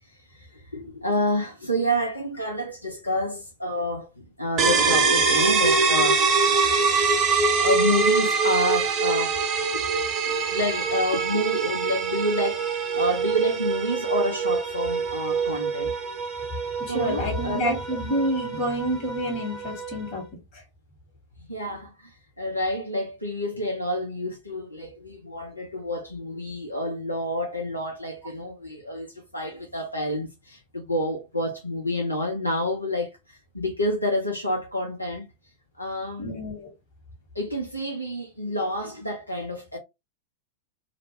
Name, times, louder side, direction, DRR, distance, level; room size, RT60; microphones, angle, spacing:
voice 1, 0.3-6.2 7.5-9.4 9.7-10.0 10.2-15.9 16.9-17.8 21.4-22.1 22.4-35.2 35.8-36.4 37.3-39.8, equal, 85° left, 0.5 m, -29 dB
sound 1, 4.6-20.1, right 4 dB, 30° right, 0.8 m, -24 dB
voice 2, 16.8-20.2 36.2-36.7, equal, 40° left, 1.4 m, -28 dB
2.5 x 2.1 x 2.9 m
figure-of-eight pair, 90°, 0 cm